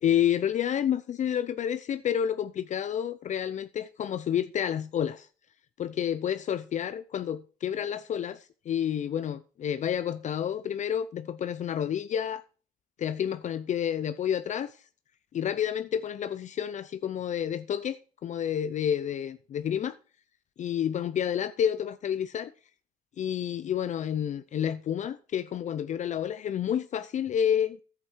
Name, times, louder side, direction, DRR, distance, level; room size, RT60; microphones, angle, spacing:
voice 1, 0.0-5.3 5.8-12.4 13.0-14.8 15.3-20.0 20.6-22.5 23.2-27.8, left 9 dB, 45° left, 0.6 m, -29 dB
11.0 x 8.1 x 4.6 m
cardioid pair, 110°, 17 cm